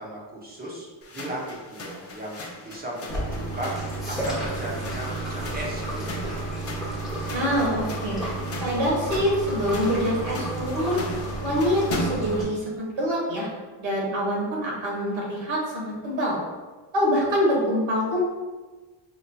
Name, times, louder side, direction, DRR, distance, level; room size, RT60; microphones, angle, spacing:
voice 1, 0.0-6.5, right 1 dB, 20° right, -4 dB, 0.7 m, -36 dB
sound 1, 1.0-12.4, left 1 dB, 35° left, 0.5 m, -38 dB
sound 2, 3.1-12.4, right 2 dB, ahead, 1.0 m, -32 dB
voice 2, 7.3-8.2 8.6-11.0 11.4-13.5 13.8-16.4 16.9-18.3, equal, 75° right, -3 dB, 1.3 m, -25 dB
5.4 x 2.7 x 2.2 m, 1.3 s
wide cardioid pair, 175°, 46 cm